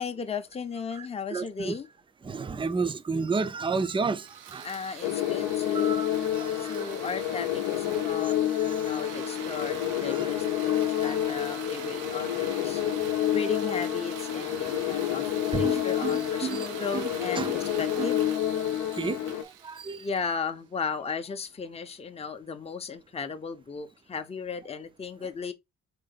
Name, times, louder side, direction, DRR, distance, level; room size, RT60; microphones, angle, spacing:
voice 1, 0.0-1.9 4.6-6.0 6.6-12.8 13.3-18.2 20.0-25.5, left 5 dB, 20° left, 0.6 m, -36 dB
voice 2, 1.3-1.7 2.2-4.2 4.5-4.6 5.7-6.1 6.4-6.5 6.8-6.9 10.1-10.3 11.1-11.2 15.5-16.7 16.9-17.1 17.4-17.6 18.0-18.1 19.0-19.2 19.6-20.0, right 4 dB, 15° right, 0.5 m, -31 dB
sound 1, 4.2-20.4, right 9 dB, 85° right, 0.7 m, -43 dB
sound 2, 5.0-19.4, left 11 dB, 75° left, 0.7 m, -29 dB
3.9 x 3.1 x 4.0 m
cardioid pair, 90°, 30 cm